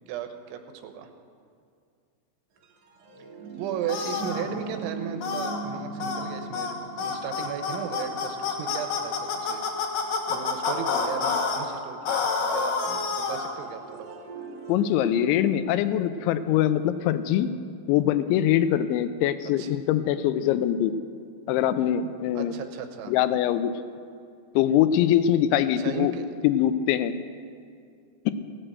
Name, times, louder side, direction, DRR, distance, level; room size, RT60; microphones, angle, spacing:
voice 1, 0.1-1.1 3.6-9.7 10.3-14.2 19.6-19.7 22.3-23.1 25.8-26.3, right 8 dB, 90° right, 7 dB, 3.3 m, -36 dB
sound 1, 2.6-10.2 13.4-17.4, right 4 dB, 70° right, 1.5 m, -41 dB
sound 2, 3.9-4.4 5.2-5.6 6.0-6.2 6.5-6.7 7.0-11.6 12.0-13.5, left 5 dB, 65° left, 2.4 m, -28 dB
voice 2, 14.7-17.5 17.9-20.9 21.5-22.5 23.1-23.7 24.6-26.1 26.4-27.2 28.3-28.4, left 11 dB, 90° left, 12 dB, 3.0 m, -23 dB
16.5 x 7.8 x 7.6 m, 2.3 s
omnidirectional pair, 5.2 m